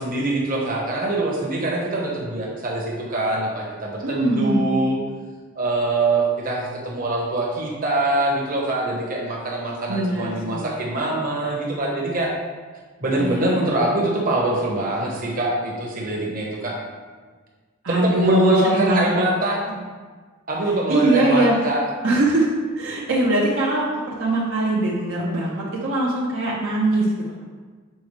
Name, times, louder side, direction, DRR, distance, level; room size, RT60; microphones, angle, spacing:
voice 1, 0.0-5.0 5.5-12.3 13.0-16.8 17.9-19.6 20.5-21.8, right 2 dB, 45° right, -3 dB, 1.3 m, -23 dB
voice 2, 4.0-4.6 9.9-10.8 13.2-13.7 17.8-19.1 20.9-21.6 22.0-22.5 22.8-27.1, right 1 dB, 65° right, -4 dB, 1.0 m, -21 dB
7.0 x 4.8 x 3.3 m, 1.4 s
head